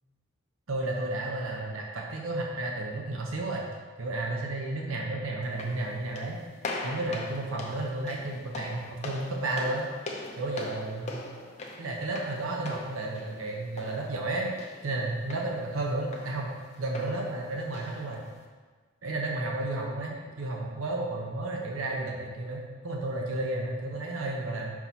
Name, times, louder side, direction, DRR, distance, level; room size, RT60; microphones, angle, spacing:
voice 1, 0.7-3.7 4.0-6.4 6.8-9.9 10.4-11.2 11.8-14.5 14.8-16.5 16.8-18.2 19.0-24.7, right 2 dB, 80° right, 0 dB, 0.8 m, -32 dB
sound 1, 5.4-18.5, left 2 dB, 35° left, 0.7 m, -42 dB
5.8 x 4.8 x 4.0 m, 1.4 s
head